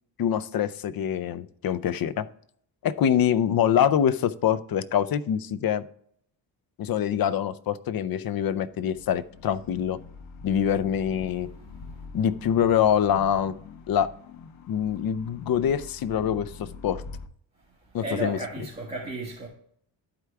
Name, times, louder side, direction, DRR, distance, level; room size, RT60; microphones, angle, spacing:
voice 1, 0.2-2.3 2.8-5.8 6.8-10.0 10.4-11.5 12.1-13.5 13.9-14.1 14.7-17.0 17.9-18.4, left 9 dB, 50° left, 0.6 m, -25 dB
sound 1, 8.6-17.3, left 4 dB, 85° left, 0.8 m, -44 dB
voice 2, 17.9-19.5, right 2 dB, 15° right, 1.9 m, -33 dB
11.5 x 4.8 x 3.4 m
cardioid pair, 120°, 46 cm